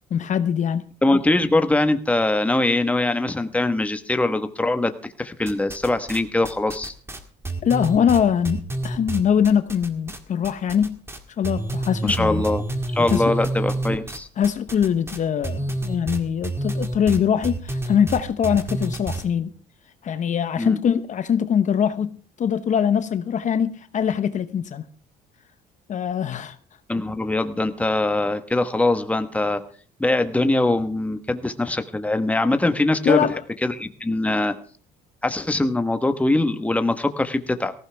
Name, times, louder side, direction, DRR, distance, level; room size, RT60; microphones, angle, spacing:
voice 1, 0.1-0.8 7.6-11.0 11.4-12.4 13.1-13.2 14.4-19.5 20.0-24.8 25.9-26.6 33.0-33.4, left 8 dB, 45° left, 0.9 m, -22 dB
voice 2, 1.0-6.9 12.0-12.6 12.9-14.3 20.6-20.8 26.9-29.6 30.0-33.2 33.6-34.5 35.2-37.7, left 2 dB, 10° left, 1.2 m, -22 dB
sound 1, 5.5-6.2 6.4-10.2 10.4-11.2 11.4-19.2, right 2 dB, 15° right, 1.9 m, -28 dB
18.0 x 15.5 x 3.4 m
cardioid pair, 110°, 17 cm